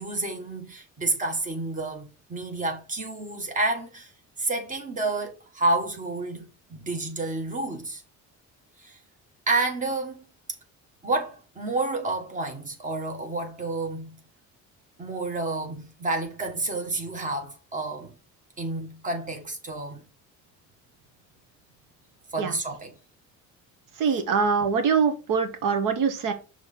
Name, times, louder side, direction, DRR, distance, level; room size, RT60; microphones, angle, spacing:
voice 1, 0.0-4.1 4.4-8.0 8.8-9.0 9.5-10.2 11.0-14.1 15.0-18.1 18.6-20.0 22.3-22.9 24.1-24.2, right 2 dB, 25° right, 1.6 m, -30 dB
voice 2, 24.0-26.3, right 6 dB, 75° right, 1.2 m, -23 dB
6.2 x 3.3 x 5.7 m
cardioid pair, 145°, 32 cm